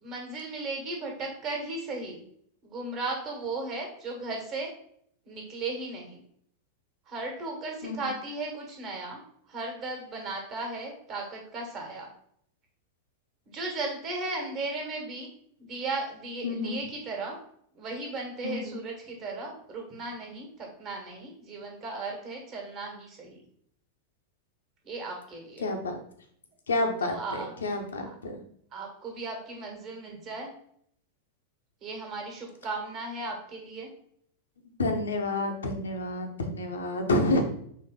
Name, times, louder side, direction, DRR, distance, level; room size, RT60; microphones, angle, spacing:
voice 1, 0.0-2.2 2.6-4.7 5.3-6.2 7.1-9.2 9.5-12.1 13.5-15.3 15.6-17.4 17.7-23.4 24.8-25.7 27.0-27.5 28.0-28.2 28.7-30.5 31.8-33.9, right 3 dB, 35° right, 1 dB, 1.3 m, -36 dB
voice 2, 16.4-16.8 18.4-18.8 25.6-25.9 26.7-27.1 27.6-28.4 34.8-37.4, left 2 dB, 70° left, 3 dB, 0.7 m, -28 dB
4.4 x 2.9 x 3.7 m, 0.66 s
figure-of-eight pair, 90°, 0 cm